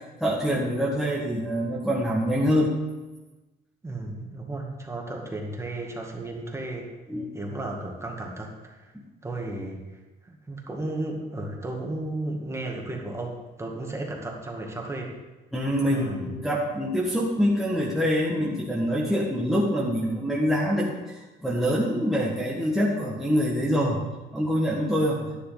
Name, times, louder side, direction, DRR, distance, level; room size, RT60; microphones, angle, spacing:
voice 1, 0.2-2.7 7.1-7.3 15.5-24.0 24.3-25.2, equal, ahead, -5 dB, 1.7 m, -25 dB
voice 2, 3.8-6.9 7.3-8.9 9.2-9.8 10.2-15.2 15.9-16.3 25.2-25.3, right 2 dB, 15° right, 0 dB, 2.1 m, -34 dB
11.0 x 10.5 x 4.1 m, 1.1 s
cardioid pair, 110°, 17 cm